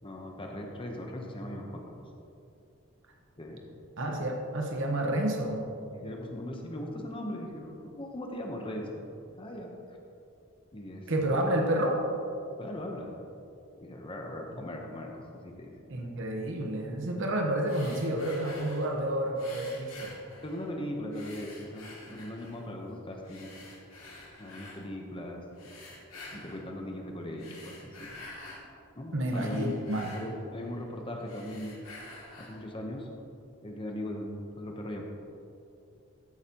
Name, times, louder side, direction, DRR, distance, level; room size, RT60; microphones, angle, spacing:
voice 1, 0.0-1.9 3.4-3.7 5.9-10.0 10.7-11.1 12.6-13.2 13.8-15.7 20.4-23.5 24.4-25.4 26.3-28.1 28.9-29.7 30.1-31.8 32.4-33.1 33.6-35.0, left 1 dB, 25° left, 1 dB, 0.9 m, -39 dB
voice 2, 4.0-5.6 11.1-12.0 15.9-20.1 29.1-30.1, right 1 dB, 60° right, 1 dB, 1.1 m, -30 dB
sound 1, 17.6-18.9 19.4-20.8 21.1-22.7 23.2-24.8 25.5-26.7 27.3-28.7 29.0-30.9 31.2-32.7, left 2 dB, 70° left, 2.5 m, -48 dB
13.5 x 8.1 x 2.9 m, 2.7 s
head